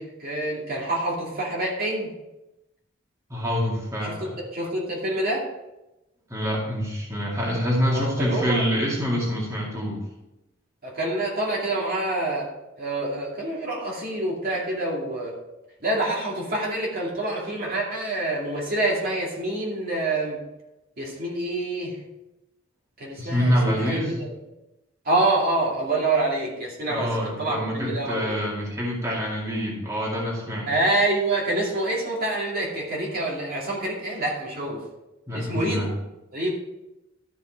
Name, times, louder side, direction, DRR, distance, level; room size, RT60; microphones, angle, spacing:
voice 1, 0.0-2.1 4.2-5.4 7.9-8.6 10.8-12.5 12.8-15.3 15.8-20.4 21.0-22.0 23.0-24.3 25.0-28.5 30.7-34.8 35.3-36.0 36.3-36.5, right 2 dB, 50° right, -3 dB, 2.5 m, -26 dB
voice 2, 3.3-4.4 6.3-10.0 23.2-24.2 26.9-30.7 35.3-35.9, equal, 15° right, -5 dB, 2.3 m, -26 dB
13.0 x 5.6 x 4.6 m, 0.95 s
head